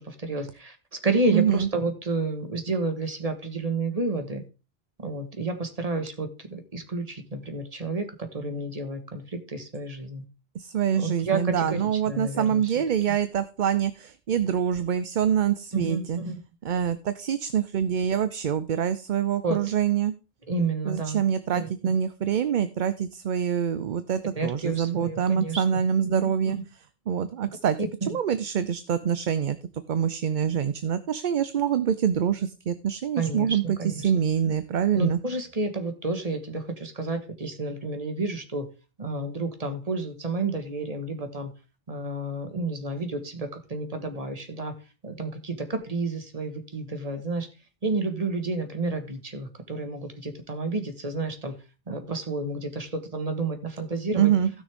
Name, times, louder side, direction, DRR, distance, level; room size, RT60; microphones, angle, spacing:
voice 1, 0.0-4.4 5.0-10.2 10.9-12.7 15.7-16.4 19.4-19.6 20.5-21.2 21.5-21.9 24.4-25.6 26.0-26.6 27.8-28.2 33.2-34.5 34.9-38.7 39.0-41.5 41.9-44.7 45.0-47.5 47.8-51.5 51.9-54.3, right 3 dB, 40° right, 7 dB, 1.5 m, -30 dB
voice 2, 1.3-1.7 10.5-16.2 16.6-20.1 20.9-26.6 27.1-27.8 28.1-29.6 29.9-35.2 54.2-54.5, right 8 dB, 55° right, 13 dB, 0.7 m, -25 dB
16.0 x 6.3 x 3.5 m, 0.31 s
omnidirectional pair, 1.0 m